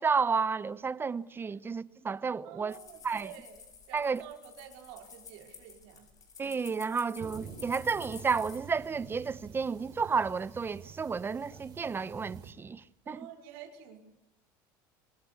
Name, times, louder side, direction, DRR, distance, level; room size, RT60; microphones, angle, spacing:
voice 1, 0.0-2.8 3.0-3.3 3.9-4.2 6.4-12.8 13.1-13.2, right 5 dB, 20° right, 0.9 m, -31 dB
voice 2, 2.4-6.1 13.0-14.0, right 9 dB, 75° right, 5.0 m, -49 dB
sound 1, 2.7-8.9 9.2-9.3 10.2-10.7 11.0-11.6, left 6 dB, 35° left, 5.2 m, -52 dB
sound 2, 7.2-12.5, right 6 dB, 45° right, 6.8 m, -48 dB
24.0 x 20.0 x 8.4 m
supercardioid pair, 110°, 10 cm